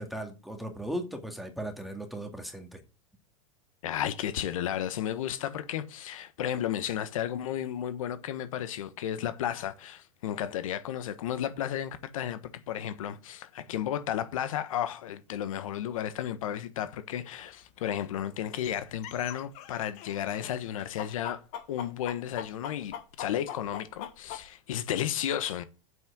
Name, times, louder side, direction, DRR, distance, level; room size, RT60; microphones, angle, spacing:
voice 1, 0.0-2.8, right 1 dB, ahead, 2.1 m, -37 dB
voice 2, 3.8-21.4 21.7-25.6, left 10 dB, 85° left, 1.3 m, -33 dB
sound 1, 17.4-17.5 18.0-18.1 18.4-20.5 20.8-24.5, left 9 dB, 45° left, 1.6 m, -41 dB
7.8 x 6.0 x 7.9 m
supercardioid pair, 140°, 17 cm